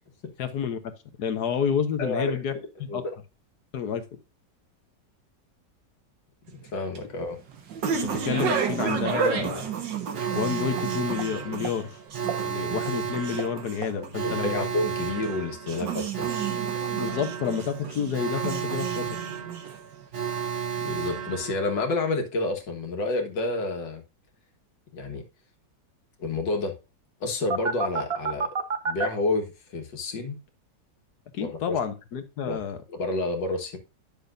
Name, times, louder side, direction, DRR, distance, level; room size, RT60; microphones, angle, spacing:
voice 1, 0.4-0.8 1.2-2.5 2.9-3.0 3.7-4.0 8.0-9.6 10.3-12.0 12.4-14.6 17.0-19.1 31.3-32.8, left 7 dB, 65° left, 1.4 m, -29 dB
voice 2, 2.0-2.4 2.9-3.2 6.6-7.4 13.9-16.4 18.3-18.4 20.8-24.0 24.9-25.2 26.2-26.7 27.2-28.5 28.8-30.4 31.4-31.8 32.5-32.6 32.9-33.8, left 2 dB, 80° left, 2.2 m, -29 dB
sound 1, 6.5-20.0, right 7 dB, 85° right, 1.9 m, -32 dB
Speech, 7.5-11.9, right 4 dB, 70° right, 1.7 m, -37 dB
Alarm, 10.1-22.0 27.5-29.1, right 7 dB, 45° right, 1.0 m, -32 dB
10.0 x 6.7 x 2.5 m
omnidirectional pair, 1.9 m